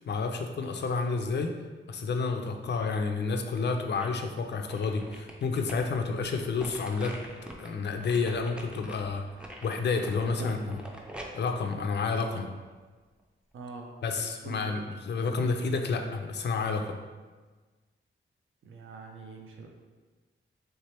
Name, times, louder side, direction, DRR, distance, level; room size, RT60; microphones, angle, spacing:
voice 1, 0.1-1.5 1.9-7.1 7.4-9.2 9.6-10.8 11.3-12.5 14.0-17.0, left 4 dB, 55° left, 4 dB, 0.5 m, -30 dB
sound 1, 3.5-4.3 4.7-12.8 13.2-13.3, equal, 5° right, 0.4 m, -46 dB
voice 2, 13.5-13.9 14.4-14.7 18.6-19.7, right 3 dB, 75° right, 2 dB, 0.5 m, -43 dB
3.4 x 3.2 x 4.3 m, 1.3 s
wide cardioid pair, 145°, 21 cm